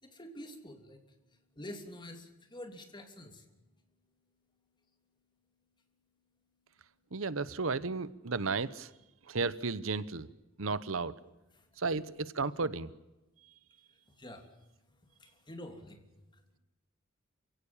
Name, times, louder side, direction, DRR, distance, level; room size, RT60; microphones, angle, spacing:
voice 1, 0.0-3.5 11.5-11.8 13.9-14.5 14.9-16.4, left 1 dB, 25° left, 5 dB, 3.1 m, -48 dB
voice 2, 7.1-8.9 9.3-10.3 10.6-11.1 11.8-12.9, right 4 dB, 90° right, 16 dB, 1.0 m, -33 dB
28.5 x 16.5 x 7.3 m, 1.0 s
head